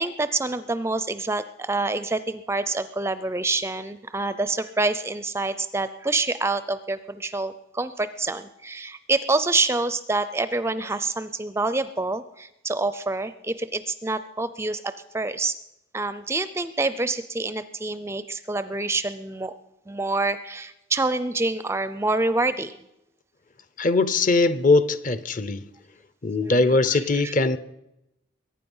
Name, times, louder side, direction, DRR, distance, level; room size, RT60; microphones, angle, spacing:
voice 1, 0.0-15.6 15.9-19.5 19.9-22.8 26.4-27.3, right 3 dB, 15° right, 13 dB, 0.4 m, -27 dB
voice 2, 23.8-25.6 26.2-27.6, left 3 dB, 40° left, 15 dB, 0.6 m, -21 dB
22.5 x 9.7 x 5.5 m, 0.88 s
head